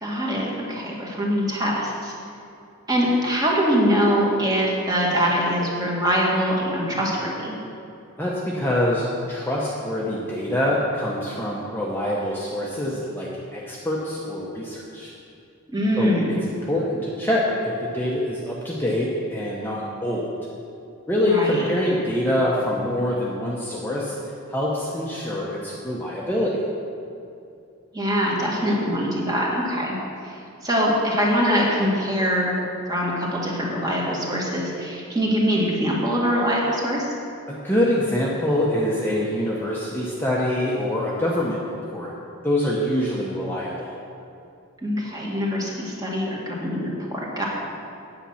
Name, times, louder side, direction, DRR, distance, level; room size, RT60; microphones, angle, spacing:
voice 1, 0.0-2.1 2.9-7.6 15.7-16.4 21.2-21.7 27.9-30.0 30.2-30.4 30.6-32.6 32.9-37.1 44.8-47.4, equal, 20° right, -3 dB, 1.9 m, -23 dB
voice 2, 8.2-15.1 16.0-16.1 16.6-20.4 21.1-24.1 24.5-26.6 37.5-42.1 42.4-44.0, left 1 dB, 10° left, -5 dB, 1.0 m, -25 dB
8.9 x 8.7 x 5.7 m, 2.6 s
head